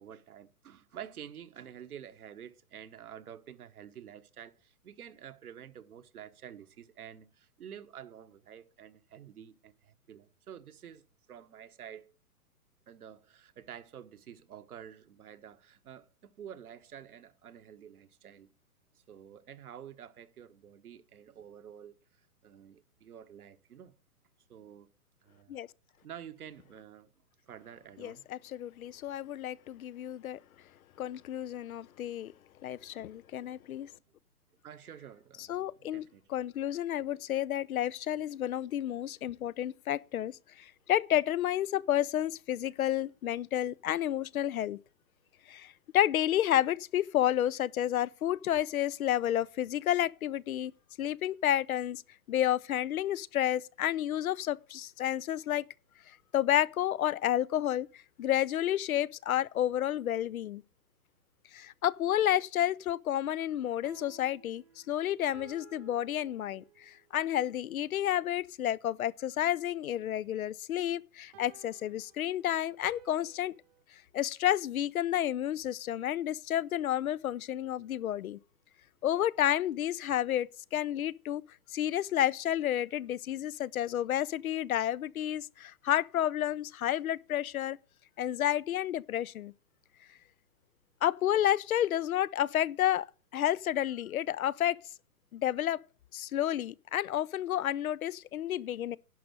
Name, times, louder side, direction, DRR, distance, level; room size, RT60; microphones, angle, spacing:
voice 1, 0.0-11.0 11.3-12.1 12.9-18.5 18.9-21.9 22.4-24.0 24.5-24.9 25.2-25.6 26.0-27.1 27.5-28.3 34.6-36.3, right 9 dB, 70° right, 1.3 m, -49 dB
voice 2, 28.0-30.4 31.0-32.3 32.6-33.9 35.4-36.0 36.3-44.8 45.5-50.7 51.0-52.0 52.3-55.6 56.1-57.9 58.2-60.6 61.5-73.6 74.1-78.4 79.0-81.4 81.7-87.8 88.2-89.5 91.0-93.1 93.3-94.8 95.3-95.8 96.1-99.0, left 12 dB, 70° left, 0.6 m, -30 dB
sound 1, 63.6-67.1 71.3-73.8, right 11 dB, 15° right, 0.5 m, -57 dB
11.0 x 5.2 x 7.6 m
hypercardioid pair, 135°, 45 cm